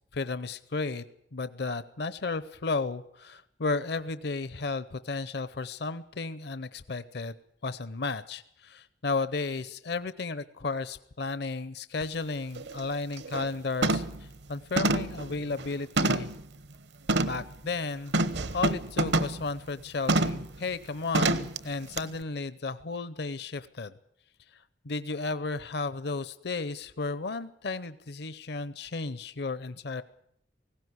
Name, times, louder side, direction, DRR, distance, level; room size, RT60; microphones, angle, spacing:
voice 1, 0.1-1.0 1.3-7.3 7.6-16.3 17.2-18.1 18.5-23.9 24.5-30.0, left 3 dB, 65° left, 14 dB, 0.7 m, -33 dB
sound 1, 12.0-12.1 12.6-12.8 13.2-13.5 13.8-14.2 14.8-16.4 17.1-17.4 18.1-19.4 20.1-20.5 21.1-21.6 22.0-22.1, right 2 dB, 75° right, 1.1 m, -27 dB
18.5 x 16.5 x 9.6 m, 0.74 s
head